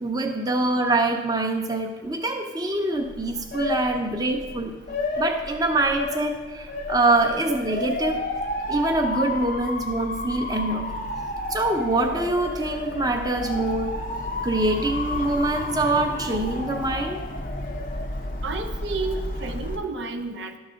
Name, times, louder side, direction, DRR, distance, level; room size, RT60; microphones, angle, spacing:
voice 1, 0.0-4.7 5.2-8.2 8.7-11.0 11.5-14.0 14.4-17.2, right 2 dB, 20° right, 4 dB, 0.7 m, -24 dB
Motor vehicle (road) / Siren, 3.0-19.8, left 2 dB, 45° left, 0.6 m, -31 dB
voice 2, 18.4-20.6, right 3 dB, 85° right, 4 dB, 0.8 m, -31 dB
11.5 x 4.0 x 6.2 m, 1.2 s
head